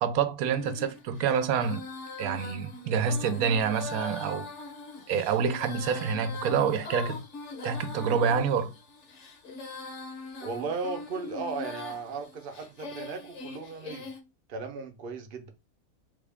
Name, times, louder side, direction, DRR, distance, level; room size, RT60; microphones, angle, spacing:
voice 1, 0.0-1.8 2.2-4.5 5.1-7.2 7.6-8.7, right 6 dB, 80° right, 1.0 m, -27 dB
Female singing, 0.6-14.2, left 3 dB, 60° left, 1.1 m, -42 dB
voice 2, 10.4-14.1 14.5-15.5, right 4 dB, 50° right, 0.7 m, -36 dB
3.5 x 2.4 x 3.4 m
omnidirectional pair, 1.5 m